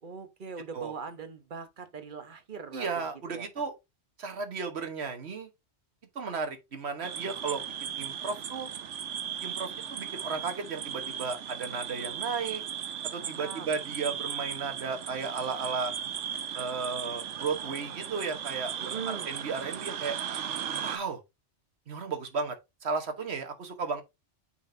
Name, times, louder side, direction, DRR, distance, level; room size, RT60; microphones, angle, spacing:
voice 1, 0.0-2.9 3.3-3.6 13.2-13.7 18.8-19.3, right 6 dB, 45° right, 1.2 m, -41 dB
voice 2, 2.7-3.7 4.2-5.5 6.1-7.6 8.0-8.7 9.4-12.6 13.1-15.9 16.5-20.2 20.8-21.2 21.9-22.6 22.8-24.0, right 4 dB, 65° right, 1.5 m, -34 dB
sound 1, 7.0-21.0, right 8 dB, 80° right, 1.1 m, -37 dB
9.1 x 4.6 x 2.7 m
omnidirectional pair, 1.2 m